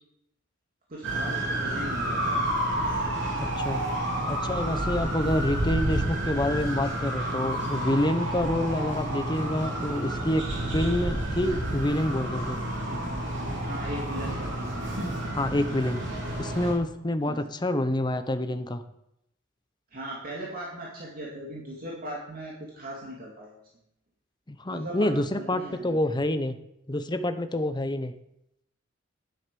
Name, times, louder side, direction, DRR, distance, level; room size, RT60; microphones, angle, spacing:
voice 1, 0.9-2.4 13.6-14.8 17.3-17.5 19.9-23.5 24.7-26.0, right 1 dB, 45° right, -4 dB, 2.4 m, -39 dB
sound 1, 1.0-16.7, right 1 dB, 65° right, 4.0 m, -30 dB
voice 2, 3.4-3.8 4.2-10.5 10.7-12.6 15.3-16.0 16.4-18.8 24.5-26.5 26.9-28.1, left 1 dB, 20° left, 10 dB, 0.8 m, -27 dB
11.0 x 7.9 x 6.9 m, 0.81 s
head